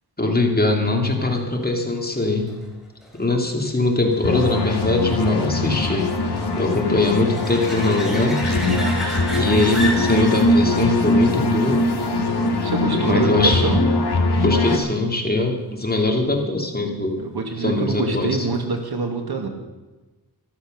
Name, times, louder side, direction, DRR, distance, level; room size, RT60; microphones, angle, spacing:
voice 1, 0.2-2.5 3.2-6.1 6.6-8.4 9.3-11.8 13.0-13.7 14.4-17.2 17.6-18.5, left 2 dB, 25° left, 2 dB, 2.8 m, -21 dB
sound 1, 1.6-12.9 18.5-18.6, left 1 dB, ahead, 4.0 m, -35 dB
sound 2, 4.2-14.8, left 2 dB, 85° left, 2.2 m, -21 dB
voice 2, 8.6-9.0 12.6-13.8 17.2-19.5, right 4 dB, 75° right, 4 dB, 2.3 m, -25 dB
13.5 x 13.0 x 6.6 m, 1.2 s
wide cardioid pair, 95°, 38 cm